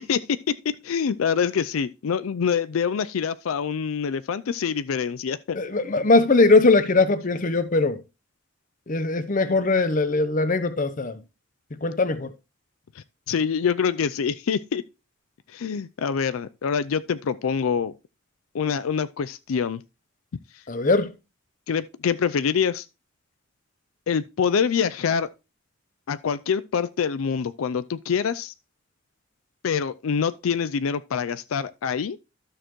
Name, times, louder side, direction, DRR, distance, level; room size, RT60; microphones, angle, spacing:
voice 1, 0.6-5.6 13.3-14.8 15.5-17.9 18.5-19.8 21.7-22.8 24.1-25.3 26.1-28.5 29.6-32.2, left 6 dB, 90° left, 0.4 m, -25 dB
voice 2, 5.5-8.0 8.9-11.2 11.8-12.3 20.7-21.1, left 3 dB, 40° left, 0.8 m, -20 dB
12.5 x 6.5 x 3.0 m
head